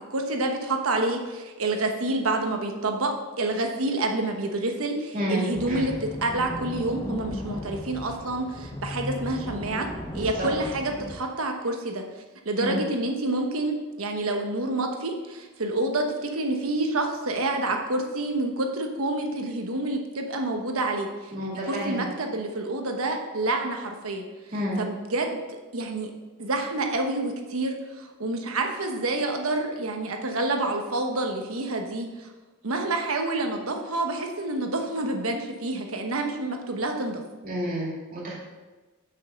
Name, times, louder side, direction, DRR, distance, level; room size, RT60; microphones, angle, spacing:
voice 1, 0.1-9.9 10.1-12.0 12.4-21.3 21.7-24.3 24.8-25.4 25.7-26.1 26.4-32.3 32.6-37.2, right 2 dB, 75° right, 3 dB, 1.1 m, -28 dB
voice 2, 5.1-5.9 10.1-10.5 12.6-12.8 21.3-22.0 24.5-24.8 37.4-38.3, equal, 40° right, -4 dB, 2.4 m, -30 dB
sound 1, 5.5-11.2, left 1 dB, 20° left, 0.7 m, -36 dB
6.1 x 5.5 x 6.5 m, 1.2 s
head